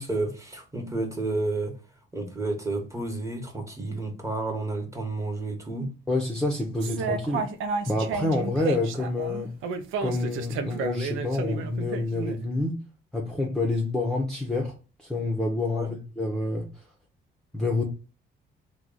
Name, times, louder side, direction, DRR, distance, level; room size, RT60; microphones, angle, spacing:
voice 1, 0.0-1.8 2.1-5.9 6.8-7.1 15.7-15.9, right 2 dB, 15° right, 1.1 m, -31 dB
voice 2, 6.1-7.5 7.9-9.5 10.0-12.8 13.1-14.7 15.0-16.8 17.5-17.8, left 2 dB, 5° left, 0.7 m, -27 dB
sound 1, 6.8-12.4, right 5 dB, 90° right, 0.5 m, -31 dB
3.0 x 2.3 x 3.8 m
cardioid pair, 90°, 20 cm